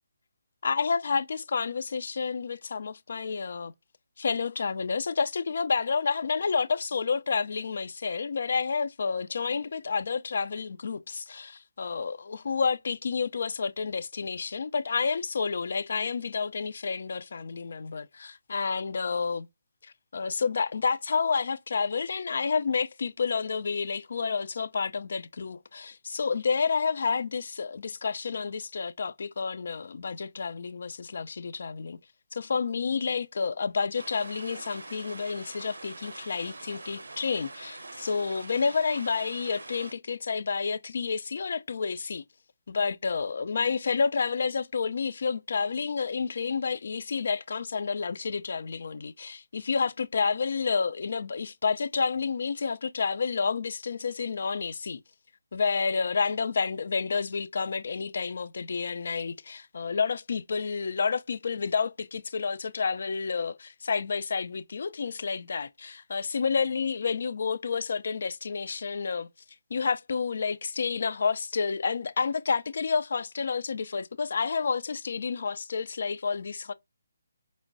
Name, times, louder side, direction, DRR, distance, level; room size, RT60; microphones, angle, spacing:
voice 1, 0.6-3.7 4.2-19.5 19.8-32.0 32.3-42.2 42.7-55.0 55.5-69.3 69.7-76.7, left 5 dB, 60° left, 0.4 m, -30 dB
sound 1, 34.0-39.9, right 2 dB, 90° right, 0.6 m, -44 dB
4.3 x 3.1 x 2.6 m
hypercardioid pair, 160°, 0 cm